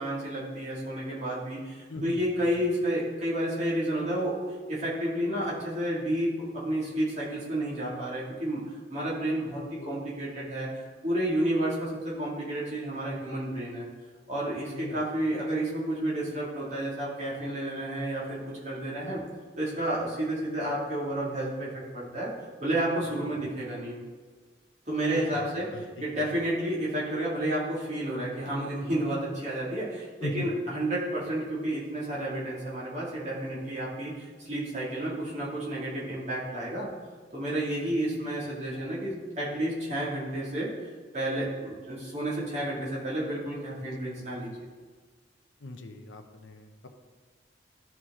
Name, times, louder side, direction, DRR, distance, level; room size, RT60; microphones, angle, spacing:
voice 1, 0.0-4.3 4.7-8.6 8.9-13.9 14.3-19.2 19.6-22.3 22.6-24.0 24.9-36.9 37.3-40.7 41.1-44.7, right 1 dB, 35° right, -6 dB, 2.4 m, -31 dB
voice 2, 1.9-2.2 9.7-10.0 14.7-15.0 23.1-23.5 25.1-26.3 30.2-30.5 43.8-44.3 45.6-46.9, left 1 dB, 90° left, 6 dB, 0.8 m, -40 dB
12.5 x 4.7 x 3.7 m, 1.5 s
head